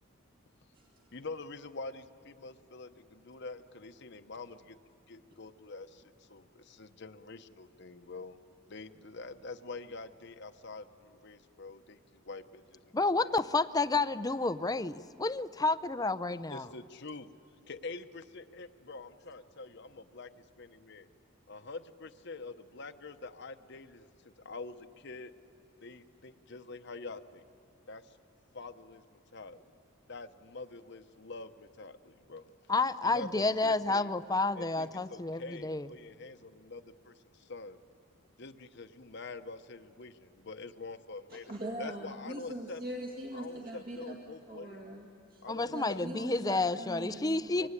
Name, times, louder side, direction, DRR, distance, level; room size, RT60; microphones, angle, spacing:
voice 1, 1.1-4.8 5.1-8.4 8.7-13.4 16.5-17.3 17.7-20.3 20.6-21.1 21.5-25.3 25.8-27.4 27.9-28.2 28.5-29.0 29.3-29.6 30.1-32.5 33.0-34.1 34.5-37.8 38.4-41.5 41.8-42.8 43.3-44.8 45.4-47.7, left 3 dB, 55° left, 9 dB, 0.9 m, -46 dB
voice 2, 12.9-16.7 32.7-35.9 45.5-47.7, left 3 dB, 20° left, 13 dB, 0.5 m, -30 dB
voice 3, 41.3-45.4 45.7-47.5, right 1 dB, 45° right, 0 dB, 2.0 m, -42 dB
24.5 x 24.5 x 9.9 m, 2.8 s
head